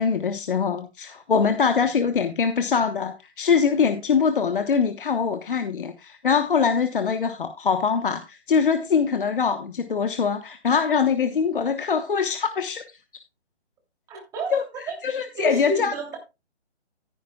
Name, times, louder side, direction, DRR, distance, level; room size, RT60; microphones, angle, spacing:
voice 1, 0.0-13.0 14.5-14.6 15.0-15.9, left 6 dB, 50° left, 1.2 m, -23 dB
voice 2, 14.1-14.9 15.3-16.2, right 1 dB, 10° right, 3.0 m, -30 dB
14.5 x 9.8 x 2.3 m
hypercardioid pair, 165°, 34 cm